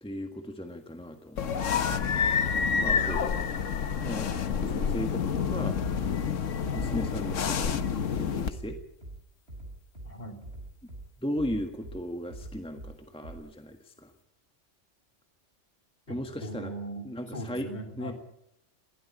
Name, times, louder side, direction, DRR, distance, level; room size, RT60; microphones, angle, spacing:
voice 1, 0.0-2.1 2.8-3.3 4.0-5.8 6.7-7.7 8.1-8.8 11.2-14.1 16.1-16.7 17.0-17.7 18.0-18.1, equal, 5° left, 5 dB, 1.5 m, -36 dB
sound 1, 1.4-8.5, left 6 dB, 75° left, 1.4 m, -28 dB
Bass drum, 5.8-6.3 6.7-7.3 7.6-8.2 8.5-9.2 9.5-10.1 10.4-11.0 11.4-12.0 12.3-12.9 13.2-13.3, right 1 dB, 55° right, 6.2 m, -43 dB
voice 2, 10.0-10.4 16.1-18.1, right 1 dB, 35° left, 3 dB, 3.4 m, -40 dB
22.0 x 16.0 x 8.5 m, 0.78 s
omnidirectional pair, 1.3 m